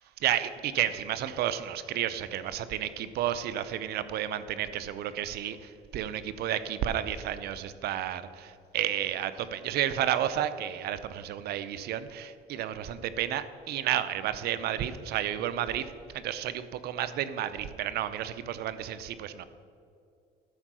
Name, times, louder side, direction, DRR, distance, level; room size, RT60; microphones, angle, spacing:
voice 1, 0.2-19.4, right 11 dB, 70° right, 13 dB, 0.6 m, -31 dB
11.5 x 4.5 x 6.1 m, 2.5 s
cardioid pair, 110°, 17 cm